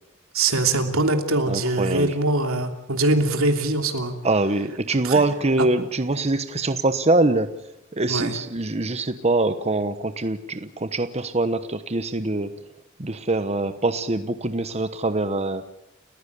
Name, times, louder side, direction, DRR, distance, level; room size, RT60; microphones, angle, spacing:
voice 1, 0.3-4.1 5.0-5.1 8.1-8.3, right 2 dB, 85° right, 6 dB, 3.0 m, -22 dB
voice 2, 1.5-2.1 4.2-7.6 7.9-12.5 13.0-15.7, right 2 dB, 30° right, 10 dB, 1.1 m, -24 dB
30.0 x 15.5 x 8.3 m, 0.85 s
head